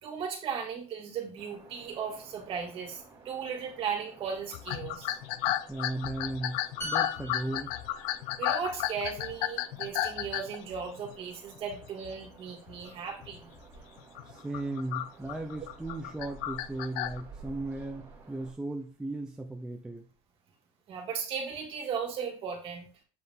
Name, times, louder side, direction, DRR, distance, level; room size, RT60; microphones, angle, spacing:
voice 1, 0.0-5.1 8.4-13.5 20.9-22.9, right 6 dB, 40° right, 1 dB, 2.3 m, -36 dB
sound 1, 1.4-18.5, right 4 dB, 20° right, 2.3 m, -53 dB
sound 2, 4.5-11.1 11.7-12.1 12.5-12.8 13.2-13.4 14.0-17.2, left 13 dB, 75° left, 0.5 m, -33 dB
voice 2, 5.7-7.8 14.2-20.0, right 2 dB, 5° right, 1 dB, 0.6 m, -36 dB
sound 3, 6.8-10.4 10.7-11.0, equal, 15° left, 2.0 m, -44 dB
7.9 x 3.9 x 3.7 m, 0.38 s
cardioid pair, 155°, 14 cm